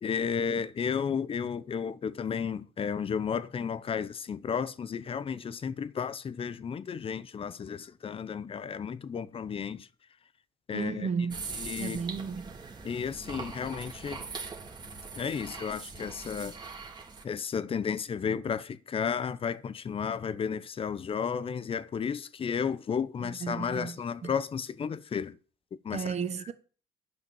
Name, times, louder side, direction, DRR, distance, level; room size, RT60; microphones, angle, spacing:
voice 1, 0.0-9.9 10.7-11.1 11.6-12.0 12.8-14.2 15.2-16.6 17.2-25.4 25.8-26.1, left 6 dB, 35° left, 0.7 m, -33 dB
voice 2, 10.7-11.4 11.8-12.6 23.2-24.3 25.9-26.5, right 6 dB, 40° right, 1.2 m, -34 dB
sound 1, 11.3-17.2, right 4 dB, 25° right, 2.0 m, -42 dB
11.0 x 5.7 x 7.1 m
cardioid pair, 110°, 17 cm